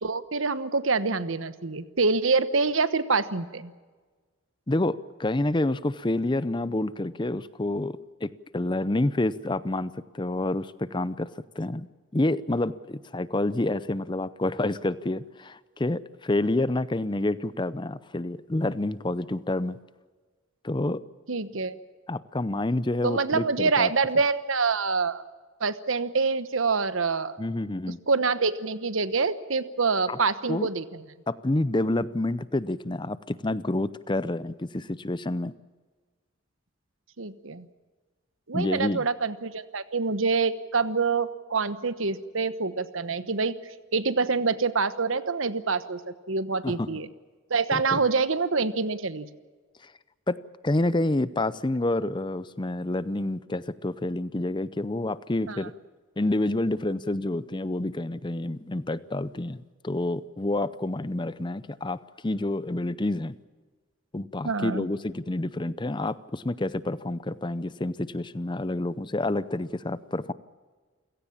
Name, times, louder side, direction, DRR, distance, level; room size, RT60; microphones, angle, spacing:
voice 1, 0.0-3.7 21.3-21.7 23.0-25.2 25.6-27.4 28.1-31.0 37.2-37.7 38.5-43.6 43.9-46.0 46.3-47.1 47.5-49.3 55.5-55.6 64.4-64.8, right 4 dB, 75° right, 14 dB, 1.1 m, -26 dB
voice 2, 4.7-11.3 11.6-11.9 12.1-19.8 20.6-21.0 22.1-23.9 27.4-28.0 30.1-30.2 30.5-30.7 31.3-35.5 38.5-39.0 46.6-46.9 47.7-48.0 49.8-49.9 50.3-50.4 50.6-55.7 56.2-59.6 59.8-62.0 62.2-63.4 64.1-70.3, left 2 dB, 20° left, 16 dB, 0.6 m, -28 dB
29.0 x 17.0 x 7.3 m, 1.4 s
head